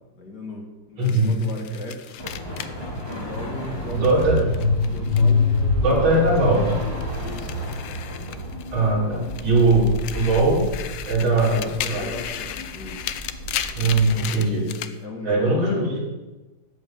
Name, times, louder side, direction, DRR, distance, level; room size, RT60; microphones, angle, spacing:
voice 1, 0.1-2.2 3.1-4.5 4.9-5.9 7.2-7.6 9.6-10.1 11.2-13.1 14.4-16.0, left 1 dB, 50° left, 1 dB, 2.5 m, -37 dB
sound 1, 1.0-5.6 5.9-8.9 9.2-14.9, left 10 dB, 70° left, 1.3 m, -36 dB
voice 2, 1.0-1.4 3.9-4.4 5.8-6.8 8.7-10.6 11.1-12.3 13.7-14.7 15.2-16.0, right 2 dB, 65° right, -3 dB, 4.1 m, -20 dB
sound 2, 2.2-14.3, left 2 dB, 10° left, 3.2 m, -27 dB
13.5 x 5.5 x 9.0 m, 1.1 s
omnidirectional pair, 2.3 m